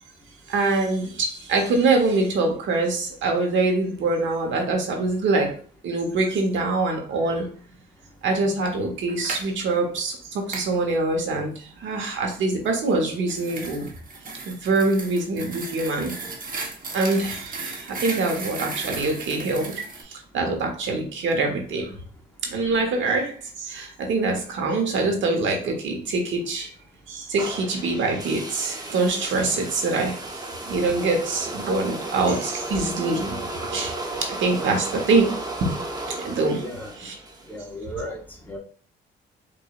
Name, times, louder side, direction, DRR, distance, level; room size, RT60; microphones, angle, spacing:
voice 1, 0.5-7.5 8.2-13.9 14.5-16.1 16.9-19.7 20.1-22.0 22.4-26.7 27.1-30.2 30.7-33.5 33.7-35.7 36.1-36.6 37.0-37.1, right 3 dB, 70° right, 2 dB, 1.1 m, -24 dB
sound 1, 9.1-9.5 10.5-10.7 12.9-20.0, right 3 dB, 45° right, 1.1 m, -35 dB
sound 2, 27.4-37.6, right 2 dB, 20° right, 0.8 m, -34 dB
voice 2, 36.6-36.9 37.5-38.2 38.5-38.6, equal, 10° left, -1 dB, 1.2 m, -34 dB
4.8 x 2.6 x 2.5 m, 0.42 s
cardioid pair, 90°, 20 cm